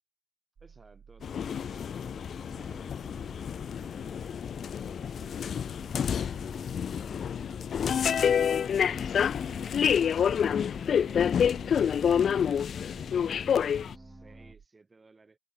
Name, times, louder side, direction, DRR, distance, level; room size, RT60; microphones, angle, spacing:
voice 1, 0.6-4.3 4.8-9.1 12.8-15.4, right 3 dB, 30° right, 7.7 m, -60 dB
sound 1, 0.6-14.7, right 6 dB, 60° right, 3.3 m, -55 dB
sound 2, 1.2-13.9, left 8 dB, 75° left, 0.6 m, -28 dB
sound 3, 2.3-14.5, equal, 5° right, 4.5 m, -53 dB
wide cardioid pair, 110°, 0 cm